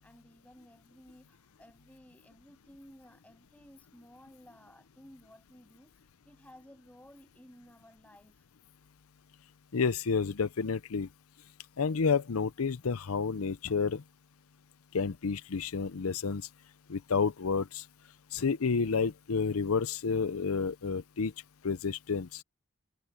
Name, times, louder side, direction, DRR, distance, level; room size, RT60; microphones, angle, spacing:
voice 1, 0.0-8.5, equal, 5° left, 7.7 m, -56 dB
voice 2, 9.7-11.1 11.8-14.0 14.9-16.5 16.9-17.8 18.3-21.3 21.6-22.4, left 5 dB, 85° left, 0.6 m, -30 dB
head